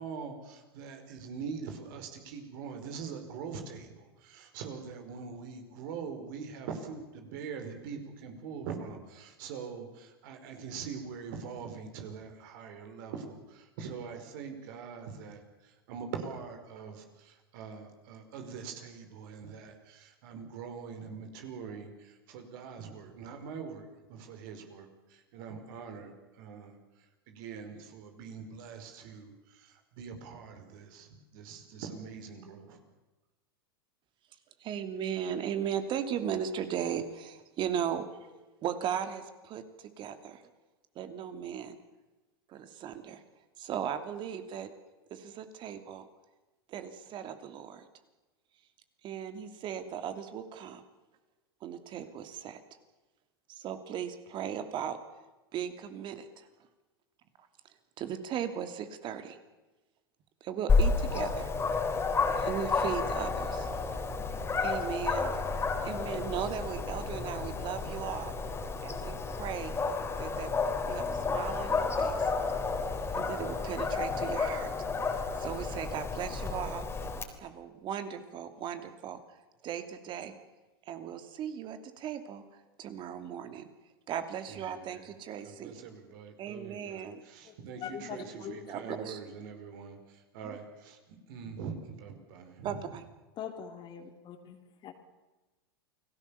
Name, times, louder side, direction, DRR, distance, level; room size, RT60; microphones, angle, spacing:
voice 1, 0.0-15.4 15.9-21.9 22.3-23.8 24.1-24.9 25.3-26.1 26.4-26.7 27.3-29.3 30.0-31.1 31.3-32.8 84.7-84.9 85.4-87.1 87.6-90.0 90.3-91.0 91.3-92.7, right 6 dB, 60° right, 6 dB, 5.0 m, -43 dB
voice 2, 34.6-38.1 38.6-40.4 40.9-41.8 42.5-43.2 43.6-44.7 45.1-46.1 46.7-47.8 49.0-50.8 51.6-52.6 53.5-55.0 55.5-56.5 58.0-59.4 60.4-61.5 61.9-63.8 64.6-65.4 65.8-68.3 68.8-69.7 70.2-70.5 70.9-72.6 73.1-74.7 75.4-76.8 77.4-79.2 79.6-80.3 80.9-82.4 82.8-83.7 84.1-85.8 86.4-87.2 88.2-88.3 88.7-89.2 90.4-90.6 92.6-93.0, right 9 dB, 40° right, 9 dB, 2.9 m, -37 dB
Dog, 60.7-77.2, left 4 dB, 20° left, 3.8 m, -31 dB
voice 3, 87.8-88.6 93.4-94.6 94.8-94.9, left 8 dB, 40° left, 5 dB, 3.4 m, -41 dB
29.5 x 19.5 x 7.1 m, 1.1 s
hypercardioid pair, 95°, 13 cm